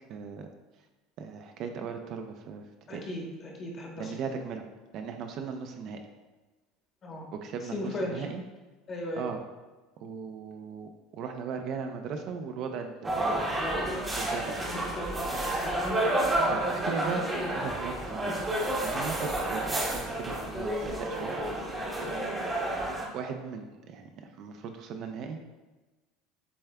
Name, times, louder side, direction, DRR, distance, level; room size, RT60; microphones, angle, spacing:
voice 1, 0.1-0.5 1.2-2.6 2.9-3.0 4.0-4.6 4.9-6.0 7.3-8.4 9.2-9.4 10.0-13.5 14.1-14.6 16.5-17.3 17.5-18.3 18.8-21.3 23.1-25.4, right 6 dB, 55° right, 5 dB, 0.5 m, -37 dB
voice 2, 2.9-4.1 7.0-7.3 7.6-8.2 8.9-9.3 14.6-15.8, left 1 dB, 35° left, 0 dB, 1.1 m, -37 dB
sound 1, 13.0-23.1, right 1 dB, 15° right, 0.8 m, -30 dB
6.9 x 3.3 x 2.3 m, 1.2 s
supercardioid pair, 110°, 0 cm